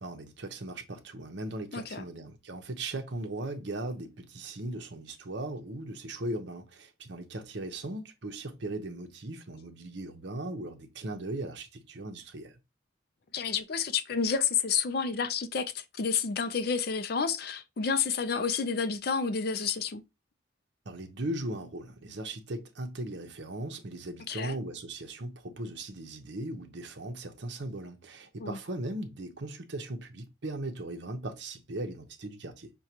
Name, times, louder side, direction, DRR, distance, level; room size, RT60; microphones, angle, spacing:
voice 1, 0.0-12.6 20.9-32.7, right 1 dB, 60° right, 0.8 m, -38 dB
voice 2, 1.7-2.0 13.3-20.0 24.3-24.6 28.4-28.6, left 6 dB, 50° left, 0.4 m, -30 dB
6.3 x 2.3 x 2.8 m
head